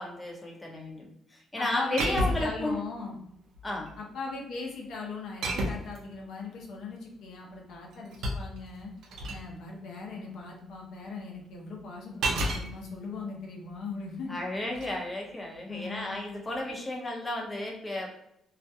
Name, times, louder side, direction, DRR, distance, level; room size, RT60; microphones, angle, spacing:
voice 1, 0.0-2.8 3.6-3.9 14.3-18.1, left 1 dB, 20° left, -1 dB, 0.7 m, -33 dB
voice 2, 1.6-3.2 4.0-8.9 9.3-14.4 15.7-16.1 16.6-16.7, left 4 dB, 75° left, -1 dB, 0.7 m, -39 dB
sound 1, 2.0-2.6 3.5-4.0 5.4-6.0 7.7-9.5 12.2-12.7 14.6-14.9, right 1 dB, 80° right, 0.5 m, -31 dB
2.3 x 2.1 x 2.7 m, 0.78 s
cardioid pair, 90°, 0 cm